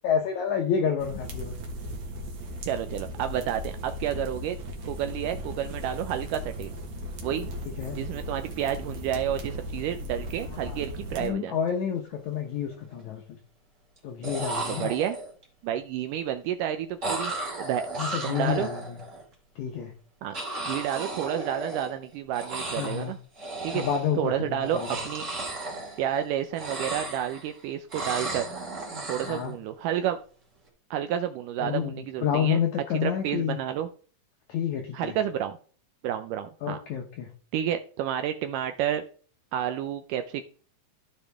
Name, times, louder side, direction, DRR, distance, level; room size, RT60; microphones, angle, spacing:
voice 1, 0.0-1.5 7.6-8.0 10.6-10.8 11.2-13.2 14.0-14.9 18.0-19.0 19.6-19.9 22.8-23.2 23.7-25.0 29.2-29.5 31.6-33.6 34.5-35.2 36.6-37.3, left 8 dB, 70° left, 3 dB, 2.1 m, -29 dB
sound 1, 1.0-11.3, equal, 60° right, 2.5 m, -37 dB
voice 2, 2.6-4.6 4.8-6.7 7.2-7.5 7.9-11.6 14.7-15.2 15.6-17.3 17.6-17.9 18.2-18.7 20.2-20.4 20.7-23.2 23.6-23.8 24.2-25.3 26.0-28.4 29.1-30.2 30.9-32.6 33.0-33.9 34.9-35.6 36.0-36.8 37.5-39.0 39.5-40.4, right 10 dB, 80° right, 8 dB, 2.0 m, -30 dB
sound 2, 11.8-12.0 12.3-12.9 14.0-14.1 14.2-15.4 17.0-19.2 20.3-22.1 22.3-23.1 23.4-24.2 24.6-26.3 26.5-27.5 27.9-29.4, right 2 dB, 25° right, 2.5 m, -34 dB
13.5 x 5.2 x 3.4 m, 0.41 s
omnidirectional pair, 4.0 m